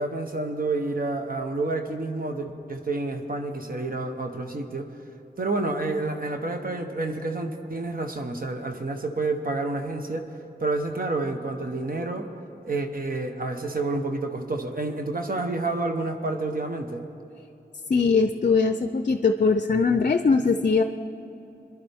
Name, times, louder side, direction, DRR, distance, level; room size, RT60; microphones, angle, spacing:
voice 1, 0.0-4.9 5.4-10.3 10.6-12.3 12.6-17.1, right 2 dB, 55° right, 5 dB, 1.0 m, -29 dB
voice 2, 17.9-20.8, left 4 dB, 50° left, 8 dB, 0.4 m, -21 dB
22.5 x 11.0 x 3.5 m, 3.0 s
wide cardioid pair, 60°, 17 cm